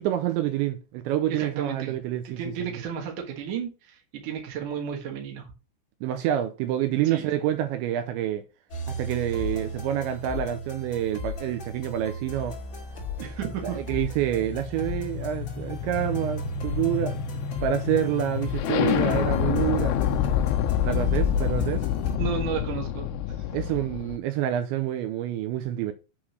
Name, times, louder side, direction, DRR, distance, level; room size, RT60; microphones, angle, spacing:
voice 1, 0.0-2.5 6.0-8.4 8.9-12.5 13.6-17.2 17.6-20.0 20.8-21.9 23.5-25.9, right 11 dB, 80° right, 2.8 m, -27 dB
voice 2, 1.3-1.9 2.2-5.5 7.0-7.3 13.2-13.8 22.2-23.1 23.4-23.5, right 8 dB, 60° right, 2.2 m, -33 dB
sound 1, 8.7-22.2, equal, 35° left, 2.2 m, -35 dB
sound 2, 14.0-24.2, left 10 dB, 90° left, 2.3 m, -28 dB
8.6 x 3.9 x 6.2 m
omnidirectional pair, 5.7 m